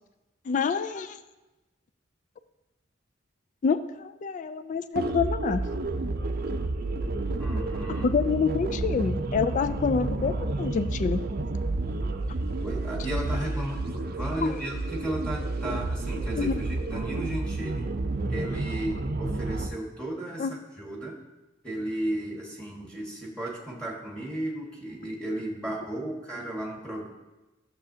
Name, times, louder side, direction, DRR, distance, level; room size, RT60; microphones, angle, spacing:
voice 1, 0.5-1.2 3.6-5.7 8.0-11.2 14.4-14.6 16.4-16.5 20.4-20.5, left 5 dB, 40° left, 12 dB, 0.3 m, -27 dB
sound 1, 4.9-19.7, right 2 dB, 50° right, 0.5 m, -30 dB
voice 2, 7.4-8.1 12.6-17.9 18.3-21.2 21.6-27.1, right 1 dB, 5° left, -3 dB, 1.5 m, -34 dB
12.5 x 6.8 x 2.8 m, 1.1 s
head